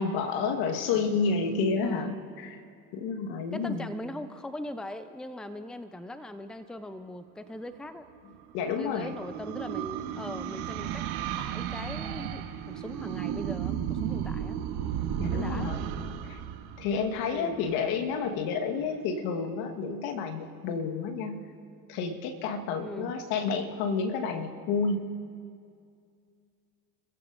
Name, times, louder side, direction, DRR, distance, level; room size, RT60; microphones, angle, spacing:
voice 1, 0.0-2.6 2.9-3.9 8.5-9.1 15.1-15.9 16.3-16.4 16.8-21.4 21.9-25.2, left 5 dB, 70° left, 4 dB, 1.6 m, -30 dB
voice 2, 1.8-2.2 3.5-8.1 8.7-14.6 15.2-15.8 17.3-17.6 18.3-18.5 22.8-23.1, left 1 dB, ahead, 10 dB, 0.7 m, -40 dB
sound 1, 8.2-17.7, right 9 dB, 65° right, 1.4 m, -34 dB
28.0 x 15.0 x 2.6 m, 2.3 s
hypercardioid pair, 70°, 40 cm